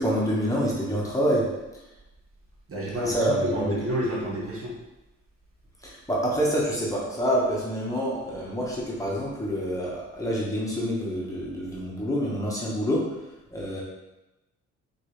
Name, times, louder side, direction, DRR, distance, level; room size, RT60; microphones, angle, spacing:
voice 1, 0.0-1.4 3.0-3.7 5.8-13.0 13.5-13.8, equal, 10° left, -5 dB, 1.2 m, -27 dB
voice 2, 2.7-4.7, equal, 50° right, -3 dB, 1.3 m, -29 dB
4.6 x 2.9 x 3.3 m, 0.98 s
cardioid pair, 90°, 30 cm